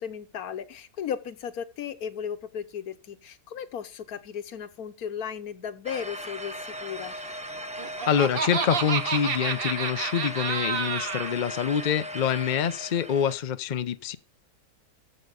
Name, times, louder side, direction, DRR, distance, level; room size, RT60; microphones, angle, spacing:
voice 1, 0.0-7.1, left 8 dB, 75° left, 1.4 m, -35 dB
sound 1, 5.8-13.3, equal, 5° right, 0.8 m, -38 dB
Laughter, 7.6-11.3, right 6 dB, 45° right, 1.0 m, -30 dB
voice 2, 8.1-14.2, left 8 dB, 55° left, 0.5 m, -26 dB
14.5 x 5.4 x 6.8 m
omnidirectional pair, 1.6 m